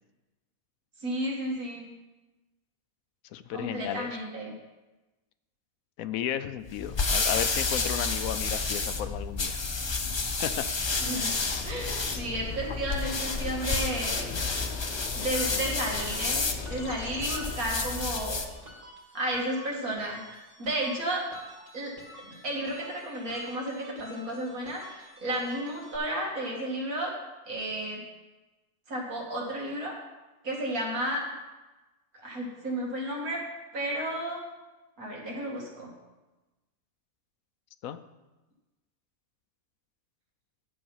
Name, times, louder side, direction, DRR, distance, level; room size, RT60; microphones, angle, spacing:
voice 1, 1.0-1.9 3.5-4.5 11.0-11.3 11.6-14.3 15.1-16.4 16.7-18.4 19.1-20.2 20.6-21.3 21.7-21.9 22.2-27.1 27.5-28.0 28.9-30.0 30.4-31.2 32.2-33.4 33.7-34.4 35.0-35.9, right 1 dB, 90° right, -2 dB, 2.6 m, -32 dB
voice 2, 3.3-4.2 6.0-9.6 10.4-10.6 37.8-38.0, left 10 dB, 80° left, 12 dB, 1.0 m, -33 dB
sound 1, 6.7-18.6, left 4 dB, 35° left, 0.4 m, -30 dB
sound 2, 10.8-17.6, left 5 dB, 55° left, 1.0 m, -44 dB
sound 3, 15.3-26.0, equal, 60° right, 2.4 m, -49 dB
10.0 x 6.9 x 5.6 m, 1.1 s
omnidirectional pair, 1.5 m